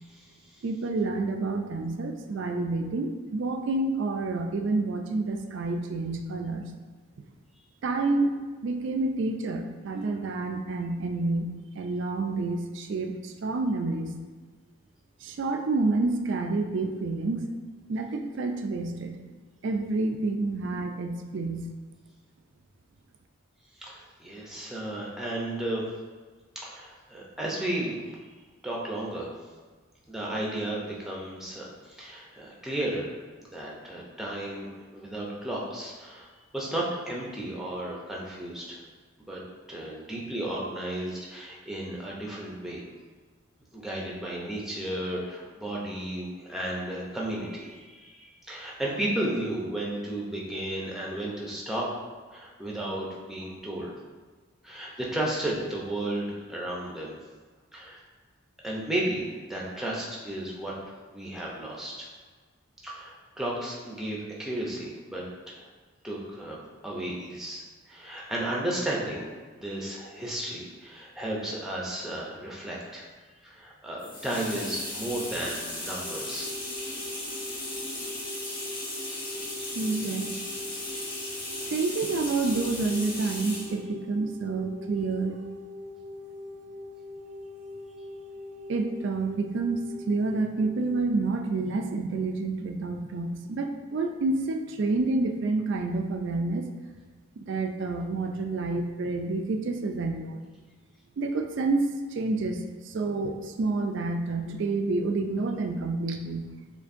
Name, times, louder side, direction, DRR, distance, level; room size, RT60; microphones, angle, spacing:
voice 1, 0.6-6.6 7.8-8.3 8.6-11.5 11.7-14.2 15.2-17.5 17.9-19.2 19.6-21.7 79.7-80.3 81.7-85.4 88.7-89.8 90.1-96.7 97.4-100.4 101.2-106.5, right 3 dB, 55° right, 5 dB, 0.3 m, -28 dB
voice 2, 23.8-25.9 26.6-28.0 28.6-29.3 30.1-33.1 33.5-34.7 34.9-36.3 36.5-38.8 39.3-39.4 39.7-42.8 43.7-51.9 52.3-53.9 54.6-57.1 57.7-58.0 58.6-60.7 61.1-62.1 62.8-65.7 66.0-66.6 66.8-73.1 73.4-76.5, right 1 dB, ahead, -4 dB, 0.6 m, -33 dB
sound 1, 74.0-83.8, left 1 dB, 20° left, 0.9 m, -36 dB
sound 2, 76.0-91.0, left 2 dB, 70° left, 0.8 m, -43 dB
6.7 x 2.6 x 2.5 m, 1.4 s
head